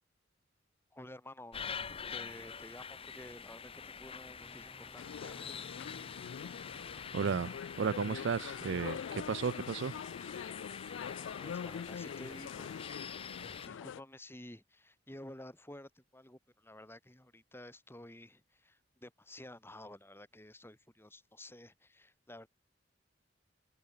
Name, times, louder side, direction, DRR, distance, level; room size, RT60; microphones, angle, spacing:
voice 1, 0.9-1.6 2.1-5.6 11.4-12.8 13.4-22.5, left 1 dB, 10° left, 5.2 m, -52 dB
sound 1, 1.5-13.7, left 6 dB, 30° left, 0.8 m, -46 dB
sound 2, 4.3-7.9, equal, 5° right, 2.1 m, -60 dB
sound 3, 5.0-14.0, left 7 dB, 75° left, 0.3 m, -44 dB
voice 2, 7.1-9.9, right 6 dB, 65° right, 0.4 m, -34 dB
head